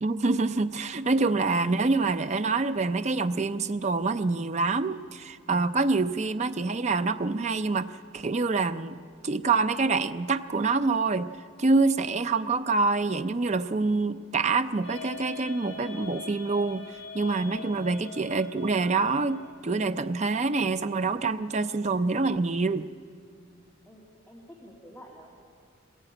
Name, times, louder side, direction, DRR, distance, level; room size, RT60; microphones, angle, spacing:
voice 1, 0.0-7.9 8.1-11.3 11.6-16.8 17.1-22.9, right 3 dB, 35° right, 10 dB, 0.5 m, -26 dB
sound 1, 14.8-19.9, left 6 dB, 75° left, 3.1 m, -43 dB
voice 2, 23.9-25.3, equal, 10° left, -3 dB, 2.2 m, -49 dB
22.0 x 15.5 x 8.9 m, 2.2 s
head